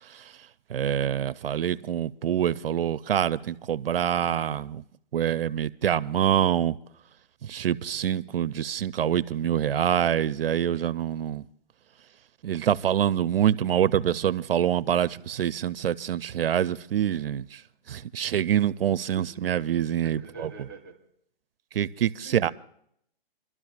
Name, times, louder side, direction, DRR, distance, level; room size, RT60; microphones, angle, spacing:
voice 1, 0.7-4.8 5.1-6.8 7.4-11.4 12.4-17.6 17.9-20.5 21.7-22.5, right 10 dB, 70° right, 0.5 m, -25 dB
voice 2, 20.0-21.0 22.2-22.5, right 4 dB, 5° left, 0.9 m, -44 dB
27.5 x 12.5 x 2.4 m
hypercardioid pair, 180°, 30 cm